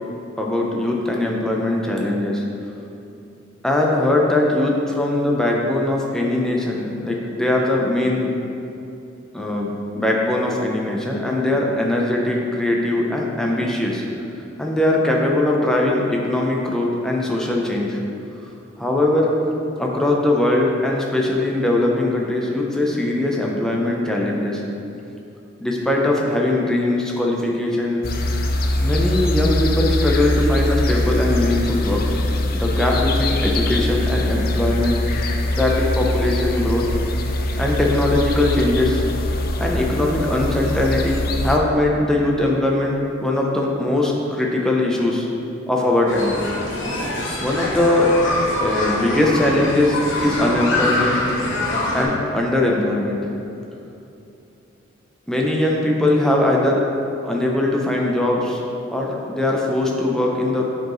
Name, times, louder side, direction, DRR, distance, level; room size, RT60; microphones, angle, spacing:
voice 1, 0.4-2.4 3.6-8.3 9.3-14.0 14.6-18.0 18.8-19.3 19.8-24.6 25.6-28.0 28.8-32.0 32.5-35.3 35.6-36.8 37.6-39.0 39.6-45.3 45.7-46.3 47.4-48.1 48.6-51.2 51.9-53.2 55.3-56.8 57.2-58.6 58.9-60.6, left 1 dB, 5° left, -2 dB, 0.6 m, -20 dB
sound 1, 28.0-41.6, left 1 dB, 45° left, 0.4 m, -22 dB
sound 2, 46.1-52.1, left 1 dB, 70° left, 1.1 m, -24 dB
7.7 x 4.5 x 3.1 m, 2.8 s
head